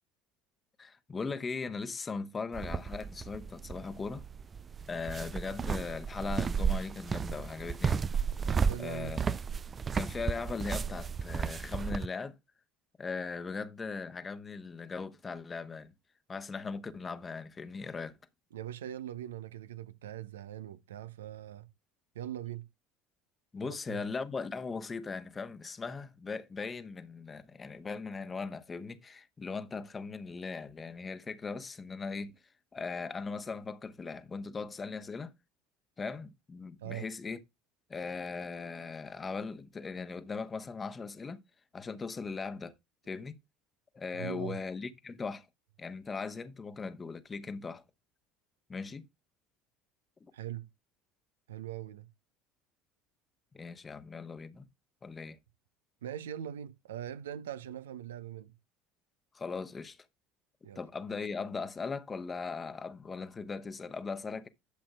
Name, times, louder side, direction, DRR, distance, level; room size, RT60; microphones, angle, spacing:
voice 1, 0.8-4.2 4.9-8.1 8.8-9.4 9.9-12.4 13.0-15.9 16.3-18.2 23.5-32.4 32.7-35.3 36.0-37.4 37.9-41.4 41.7-42.7 43.1-43.4 43.9-45.5 45.8-47.8 48.7-49.1 50.2-50.3 53.5-54.7 55.0-55.4 59.3-60.0 60.7-64.5, left 4 dB, 25° left, 1.0 m, -39 dB
sound 1, 2.5-12.1, right 6 dB, 30° right, 0.4 m, -33 dB
voice 2, 8.4-9.2 18.5-21.7 22.1-22.7 23.6-24.0 36.8-37.1 44.1-44.6 50.3-50.7 51.5-52.1 56.0-58.5 60.6-60.8, right 11 dB, 80° right, 0.6 m, -41 dB
11.5 x 7.5 x 2.3 m
hypercardioid pair, 65°, 0 cm